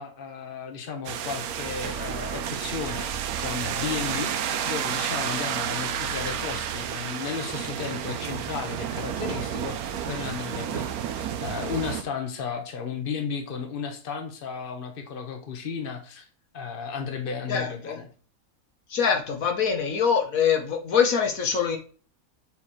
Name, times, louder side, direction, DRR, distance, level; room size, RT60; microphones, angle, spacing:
voice 1, 0.0-16.3 16.5-18.1, left 6 dB, 40° left, 5 dB, 1.2 m, -34 dB
sound 1, 1.1-12.0, right 9 dB, 80° right, 1.1 m, -31 dB
voice 2, 17.5-18.0 18.9-21.8, left 6 dB, 70° left, 4 dB, 1.4 m, -24 dB
7.2 x 3.2 x 4.3 m, 0.39 s
omnidirectional pair, 1.5 m